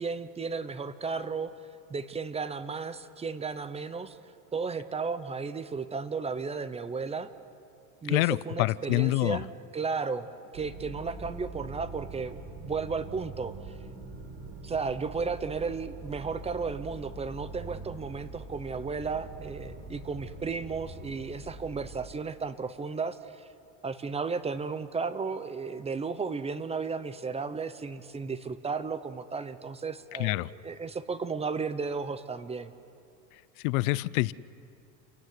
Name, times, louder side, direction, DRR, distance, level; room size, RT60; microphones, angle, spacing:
voice 1, 0.0-1.5 1.9-4.2 4.5-7.3 8.0-13.8 14.6-23.5 23.8-32.7, right 4 dB, 15° right, 13 dB, 0.8 m, -34 dB
voice 2, 8.1-9.4 30.2-30.5 33.6-34.3, left 20 dB, 70° left, 20 dB, 0.7 m, -26 dB
sound 1, 10.5-21.9, right 3 dB, 60° right, 6.8 m, -43 dB
29.0 x 16.5 x 9.6 m, 2.5 s
supercardioid pair, 135°, 43 cm